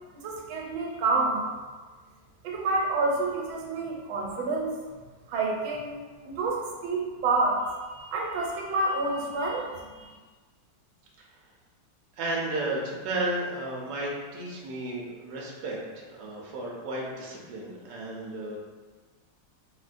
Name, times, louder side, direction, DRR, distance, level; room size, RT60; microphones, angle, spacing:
voice 1, 0.2-1.4 2.4-4.7 5.3-5.9 6.2-7.6 7.9-10.2, right 3 dB, 90° right, -1 dB, 1.4 m, -28 dB
voice 2, 12.2-18.6, right 2 dB, 70° right, -3 dB, 1.2 m, -33 dB
3.7 x 2.1 x 2.5 m, 1.4 s
omnidirectional pair, 2.2 m